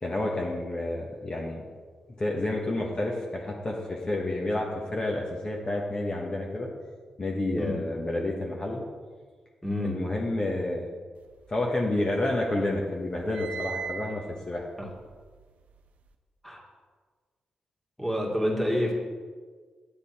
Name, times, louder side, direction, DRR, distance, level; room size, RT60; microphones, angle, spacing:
voice 1, 0.0-1.6 2.2-6.7 7.2-8.8 9.8-10.9 11.5-14.6, left 2 dB, 35° left, -2 dB, 1.4 m, -29 dB
voice 2, 9.6-10.0 14.8-14.9 16.4-16.6 18.0-18.9, left 1 dB, 5° left, -1 dB, 2.1 m, -28 dB
sound 1, 11.3-12.4 12.7-16.1, right 6 dB, 80° right, 0.6 m, -40 dB
9.2 x 7.6 x 4.4 m, 1.5 s
cardioid pair, 65°, 2 cm